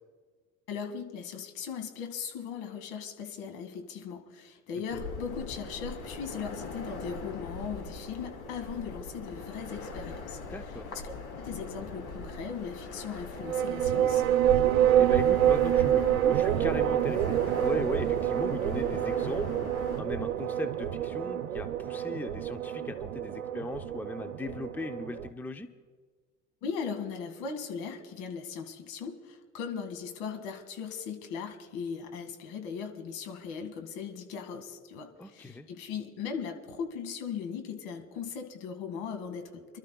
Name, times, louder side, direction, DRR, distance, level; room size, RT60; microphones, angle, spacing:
voice 1, 0.7-10.4 11.0-14.2 26.6-39.8, left 6 dB, 65° left, 6 dB, 2.1 m, -38 dB
sound 1, 4.9-20.0, left 3 dB, 50° left, 3.1 m, -40 dB
voice 2, 10.5-10.8 15.0-19.7 20.0-25.7 35.2-35.7, left 2 dB, 5° left, 9 dB, 0.6 m, -38 dB
sound 2, 13.4-25.3, right 11 dB, 85° right, 0.8 m, -27 dB
29.0 x 12.5 x 2.3 m, 1.5 s
hypercardioid pair, 70°, 41 cm